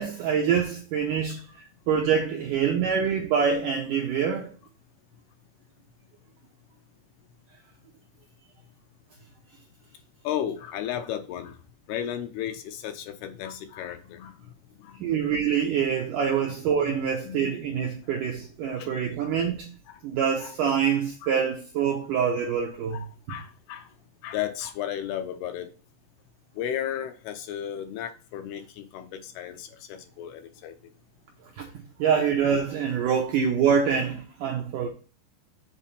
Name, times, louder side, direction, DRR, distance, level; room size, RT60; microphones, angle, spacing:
voice 1, 0.0-4.5 15.0-19.7 20.0-23.4 31.6-31.7 32.0-34.9, right 7 dB, 80° right, 1.9 m, -25 dB
voice 2, 10.2-11.6 11.9-14.3 14.8-15.1 16.9-17.0 17.3-17.6 18.8-19.0 20.4-20.5 21.2-21.3 22.9-23.9 24.2-25.7 26.6-30.8, left 10 dB, 80° left, 2.6 m, -34 dB
7.3 x 4.1 x 5.8 m
omnidirectional pair, 4.9 m